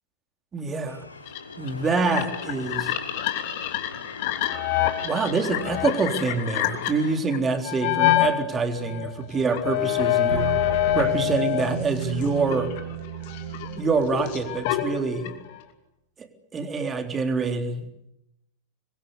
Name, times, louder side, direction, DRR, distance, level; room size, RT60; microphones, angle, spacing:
voice 1, 0.5-1.0 1.6-2.9 5.0-10.5 10.9-12.7 13.8-15.3 16.2-17.9, right 4 dB, 20° right, 6 dB, 3.7 m, -26 dB
sound 1, 0.9-7.2, left 3 dB, 80° left, 2.6 m, -40 dB
sound 2, 1.3-8.3 8.8-11.8 12.0-15.6, left 13 dB, 50° left, 3.1 m, -26 dB
sound 3, 10.3-15.0, right 8 dB, 55° right, 5.2 m, -34 dB
26.5 x 22.5 x 8.1 m, 0.83 s
figure-of-eight pair, 90°, 0 cm